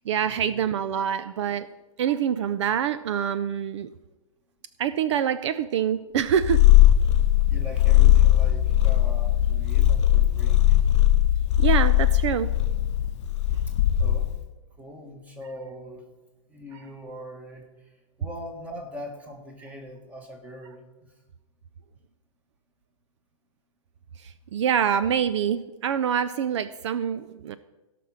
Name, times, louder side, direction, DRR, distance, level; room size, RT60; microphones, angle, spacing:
voice 1, 0.1-1.7 2.0-3.9 4.8-6.6 11.6-12.5 24.2-27.6, right 8 dB, 55° right, 14 dB, 0.5 m, -25 dB
Purr, 6.4-14.5, left 13 dB, 55° left, 0.4 m, -19 dB
voice 2, 7.5-10.8 11.7-11.8 13.7-13.8 14.0-14.3 14.8-16.0 16.5-17.9 18.2-21.1, equal, 10° right, 3 dB, 1.6 m, -41 dB
16.5 x 6.0 x 6.3 m, 1.1 s
hypercardioid pair, 165°, 17 cm